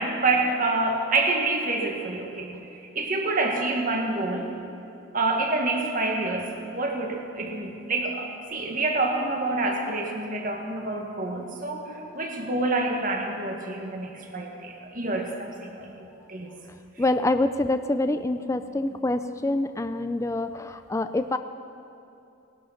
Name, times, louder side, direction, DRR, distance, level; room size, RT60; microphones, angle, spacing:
voice 1, 0.0-4.5 5.1-16.5, right 2 dB, 40° right, 2 dB, 1.7 m, -27 dB
voice 2, 17.0-21.4, left 2 dB, 15° left, 9 dB, 0.4 m, -26 dB
19.5 x 11.5 x 5.8 m, 2.8 s
head